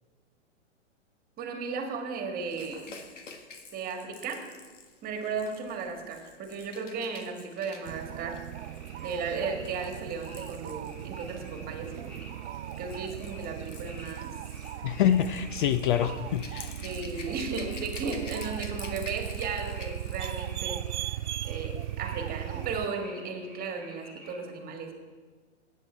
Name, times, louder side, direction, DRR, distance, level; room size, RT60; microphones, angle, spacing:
voice 1, 1.4-3.0 3.7-4.5 5.0-8.4 9.0-12.1 12.8-14.4 16.8-24.9, right 4 dB, 25° right, 4 dB, 1.8 m, -35 dB
Rattle / Rattle (instrument), 2.5-11.5 12.4-20.5 20.8-21.0, left 4 dB, 75° left, 1.6 m, -49 dB
sound 1, 7.9-22.9, right 12 dB, 65° right, 0.5 m, -38 dB
sound 2, 8.5-24.4, equal, ahead, 2.5 m, -51 dB
voice 2, 14.8-16.8, left 10 dB, 45° left, 12 dB, 0.5 m, -26 dB
18.0 x 8.3 x 4.6 m, 1.4 s
figure-of-eight pair, 115°, 37 cm